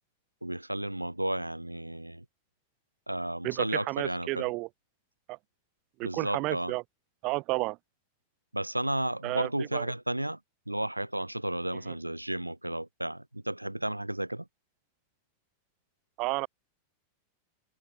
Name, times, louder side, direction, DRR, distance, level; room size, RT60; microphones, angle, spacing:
voice 1, 0.4-2.2 3.1-4.5 6.0-6.7 8.5-10.4 10.7-14.5, right 1 dB, 85° right, 4.0 m, -33 dB
voice 2, 3.4-4.7 5.3-5.4 6.0-6.8 7.2-7.8 9.2-9.9 11.9-12.0 16.2-16.5, right 23 dB, 40° right, 6.3 m, -31 dB
open air
figure-of-eight pair, 90°, 0 cm